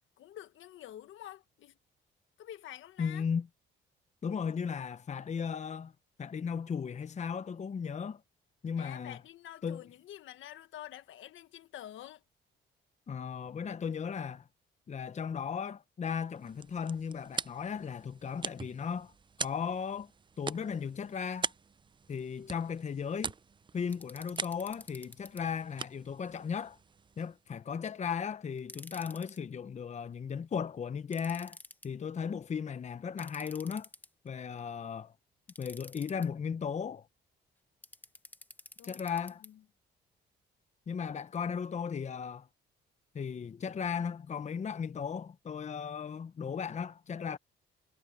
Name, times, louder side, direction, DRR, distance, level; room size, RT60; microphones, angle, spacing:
voice 1, 0.2-1.8 2.4-3.3 8.8-12.2 38.8-39.6, left 12 dB, 80° left, 1.5 m, -48 dB
voice 2, 3.0-3.5 4.2-5.9 6.2-8.2 8.6-9.2 9.6-9.8 13.1-14.4 14.9-19.1 19.4-20.1 20.4-21.5 22.1-23.3 23.7-26.8 27.2-31.6 31.8-33.9 34.2-35.1 35.6-37.1 38.8-39.4 40.9-42.5 43.1-47.4, left 6 dB, 35° left, 0.8 m, -36 dB
sound 1, 16.3-27.5, right 5 dB, 25° right, 0.5 m, -43 dB
sound 2, 23.9-25.4 28.6-29.4 31.1-31.9 33.2-34.3 35.5-36.3 37.8-39.5, left 1 dB, 10° left, 1.2 m, -51 dB
cardioid pair, 90°, 20 cm